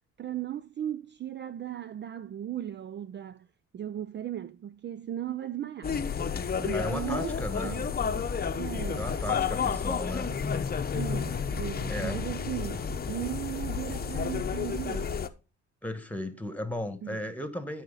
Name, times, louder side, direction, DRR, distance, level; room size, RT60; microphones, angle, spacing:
voice 1, 0.2-3.5 3.7-6.0 6.6-9.4 10.9-15.3 17.0-17.2, right 11 dB, 40° right, 0.4 m, -37 dB
sound 1, 5.8-15.3, left 6 dB, 30° left, 0.8 m, -31 dB
voice 2, 6.6-7.8 9.0-10.3 11.9-12.2 15.8-17.8, left 1 dB, 5° left, 1.6 m, -35 dB
12.0 x 4.9 x 3.9 m
cardioid pair, 90°, 30 cm